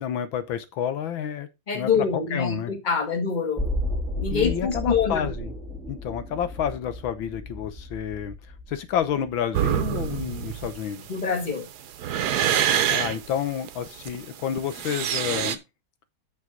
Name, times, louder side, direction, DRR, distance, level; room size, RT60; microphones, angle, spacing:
voice 1, 0.0-1.5 1.7-2.7 4.3-5.5 5.9-8.3 8.7-11.1 12.9-15.6, left 9 dB, 80° left, 1.6 m, -29 dB
voice 2, 1.7-3.7 4.2-5.3 11.1-11.7, left 6 dB, 25° left, 1.7 m, -25 dB
sound 1, 3.6-9.5 9.9-10.0, equal, ahead, 3.4 m, -33 dB
sound 2, 9.5-15.6, right 10 dB, 60° right, 1.2 m, -26 dB
8.9 x 6.4 x 3.8 m
omnidirectional pair, 2.2 m